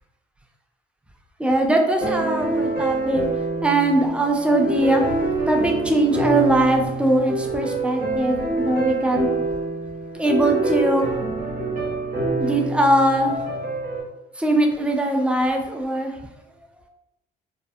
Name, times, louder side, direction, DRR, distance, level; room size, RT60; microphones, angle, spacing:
voice 1, 1.4-3.2 3.6-5.1 5.5-9.3 10.2-11.0 12.4-13.4 14.4-16.1, right 1 dB, 5° right, 2 dB, 0.3 m, -21 dB
sound 1, 2.0-14.0, right 3 dB, 50° right, 0.9 m, -26 dB
2.5 x 2.1 x 2.4 m, 0.91 s
cardioid pair, 110°, 17 cm